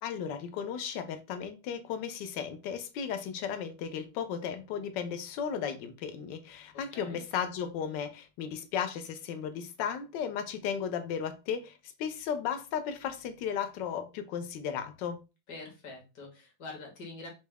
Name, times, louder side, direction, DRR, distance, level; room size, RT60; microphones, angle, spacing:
voice 1, 0.0-15.2, left 7 dB, 75° left, 1.2 m, -35 dB
voice 2, 6.7-7.2 15.5-17.3, left 3 dB, 60° left, 1.7 m, -45 dB
4.7 x 2.1 x 3.3 m
omnidirectional pair, 2.0 m